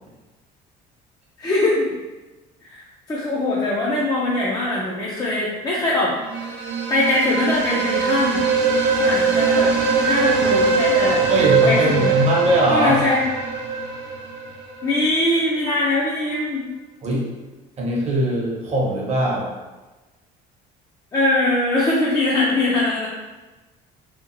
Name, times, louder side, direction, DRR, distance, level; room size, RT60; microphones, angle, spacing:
voice 1, 1.4-1.9 2.6-2.8 3.1-6.6 6.9-8.4 9.0-9.7 10.0-11.2 11.7-12.1 12.7-13.2 14.8-16.7 21.1-23.1, left 2 dB, 20° left, -5 dB, 0.5 m, -21 dB
sound 1, 6.2-15.0, right 4 dB, 80° right, 0.5 m, -21 dB
voice 2, 11.1-13.0 17.0-17.3 17.8-19.5, right 1 dB, 35° right, -3 dB, 0.8 m, -21 dB
2.9 x 2.4 x 2.5 m, 1.1 s
cardioid pair, 110°, 18 cm